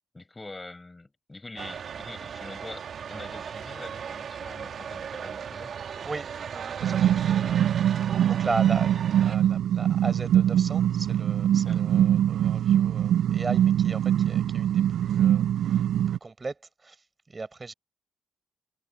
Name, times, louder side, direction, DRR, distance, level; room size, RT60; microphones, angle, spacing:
voice 1, 0.1-5.8 11.6-11.8, left 2 dB, 20° left, 6.0 m, -44 dB
sound 1, 1.6-9.4, right 7 dB, 55° right, 2.7 m, -37 dB
voice 2, 6.0-7.8 8.3-17.7, right 3 dB, 25° right, 5.5 m, -37 dB
sound 2, 6.8-16.2, right 10 dB, 75° right, 0.4 m, -23 dB
cardioid pair, 90°, 0 cm